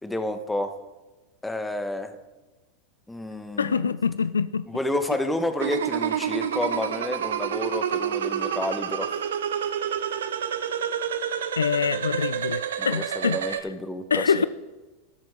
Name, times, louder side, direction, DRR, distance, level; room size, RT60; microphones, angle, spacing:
voice 1, 0.0-0.7 1.4-2.1 3.1-3.9 4.7-9.1 12.8-14.5, left 1 dB, 10° left, 1.2 m, -30 dB
voice 2, 3.6-4.6 11.6-13.6 14.1-14.5, left 6 dB, 90° left, 0.3 m, -25 dB
sound 1, 5.6-13.6, right 9 dB, 80° right, 0.7 m, -28 dB
13.0 x 12.5 x 3.7 m
hypercardioid pair, 95°, 0 cm